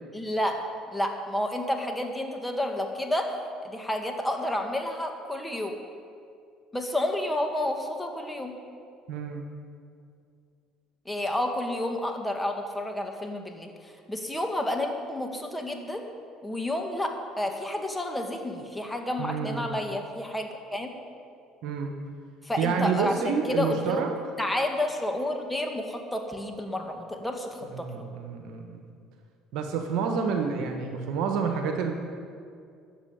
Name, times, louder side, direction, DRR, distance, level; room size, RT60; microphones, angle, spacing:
voice 1, 0.1-0.6 0.9-3.3 3.6-5.8 6.7-8.5 11.1-16.1 16.4-20.9 22.4-24.0 24.4-28.0, left 1 dB, 10° left, 3 dB, 2.1 m, -30 dB
voice 2, 9.1-9.4 19.2-19.7 21.6-22.0 22.6-24.1 27.7-28.8 29.5-31.9, right 6 dB, 70° right, 4 dB, 1.4 m, -29 dB
13.0 x 7.6 x 9.1 m, 2.3 s
hypercardioid pair, 65°, 0 cm